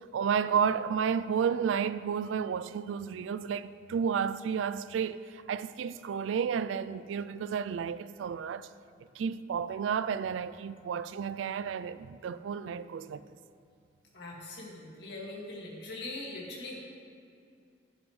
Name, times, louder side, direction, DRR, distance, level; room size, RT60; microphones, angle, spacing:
voice 1, 0.0-8.7 9.2-13.2, right 7 dB, 80° right, 0.3 m, -32 dB
voice 2, 14.1-16.8, left 2 dB, 60° left, 2.1 m, -41 dB
11.5 x 10.0 x 3.2 m
head